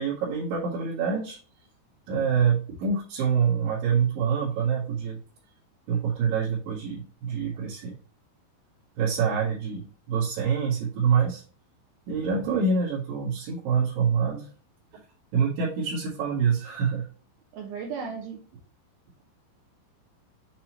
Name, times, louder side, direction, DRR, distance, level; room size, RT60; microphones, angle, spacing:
voice 1, 0.0-1.4 2.1-5.2 5.9-8.0 9.0-11.4 12.1-14.5 15.3-17.0, right 6 dB, 60° right, -9 dB, 3.0 m, -26 dB
voice 2, 17.5-18.4, right 6 dB, 80° right, 2 dB, 2.3 m, -35 dB
7.9 x 4.1 x 3.0 m, 0.39 s
omnidirectional pair, 5.3 m